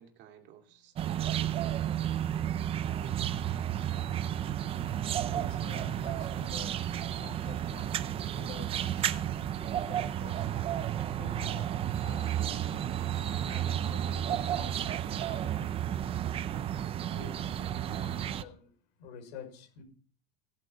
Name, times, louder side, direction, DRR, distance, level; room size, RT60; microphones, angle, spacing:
voice 1, 0.0-3.7, right 9 dB, 35° right, 2.5 m, -54 dB
sound 1, 1.0-18.4, right 11 dB, 20° right, 0.5 m, -32 dB
voice 2, 5.0-6.8 7.2-10.6 10.9-16.5 17.1-19.8, left 5 dB, 85° left, 6.0 m, -50 dB
17.5 x 8.3 x 5.1 m
cardioid pair, 175°, 29 cm